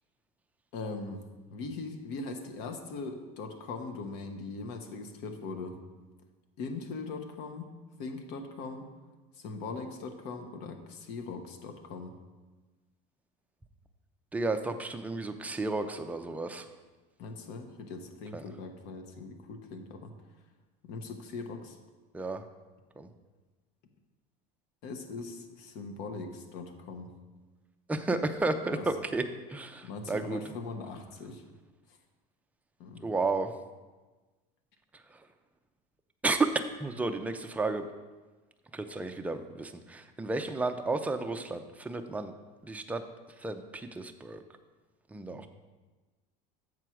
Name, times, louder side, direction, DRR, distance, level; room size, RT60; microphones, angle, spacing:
voice 1, 0.7-1.2 1.5-5.8 6.6-7.7 8.0-8.9 9.4-12.1 17.2-20.1 20.8-21.8 24.8-27.1 28.7-28.8 29.8-31.4 32.8-33.1 45.3-45.5, left 3 dB, 60° left, 5 dB, 1.1 m, -40 dB
voice 2, 14.3-16.7 18.3-18.4 22.1-22.4 23.0-23.1 27.9-29.2 29.5-30.4 33.0-33.5 35.1-35.2 36.2-36.5 36.8-37.9 38.7-42.3 42.6-43.0 43.4-44.4 45.1-45.5, right 3 dB, 5° right, 6 dB, 0.5 m, -32 dB
7.8 x 4.5 x 6.1 m, 1.2 s
cardioid pair, 140°, 19 cm